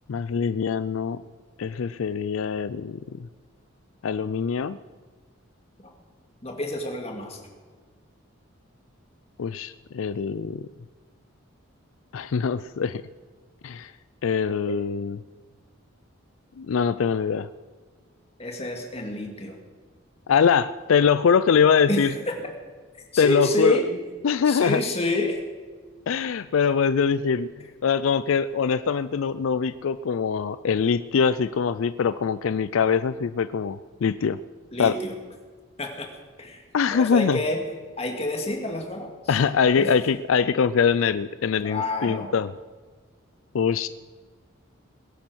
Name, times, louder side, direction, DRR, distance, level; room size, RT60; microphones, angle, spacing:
voice 1, 0.1-1.2 1.6-3.3 4.0-4.8 9.4-10.7 12.1-13.0 13.6-13.9 14.2-15.2 16.6-17.5 20.3-22.1 23.2-23.8 24.2-24.8 26.1-34.4 34.8-35.0 36.7-37.4 39.3-42.5 43.5-43.9, left 6 dB, 75° left, 14 dB, 0.4 m, -23 dB
voice 2, 6.4-7.4 18.4-19.6 21.9-22.5 23.1-24.0 24.5-25.4 34.7-35.1 35.8-36.1 36.4-36.6 36.9-37.6 38.0-39.3 39.6-39.9 41.6-42.3, left 1 dB, 30° left, 3 dB, 2.0 m, -28 dB
21.0 x 8.7 x 6.2 m, 1.5 s
head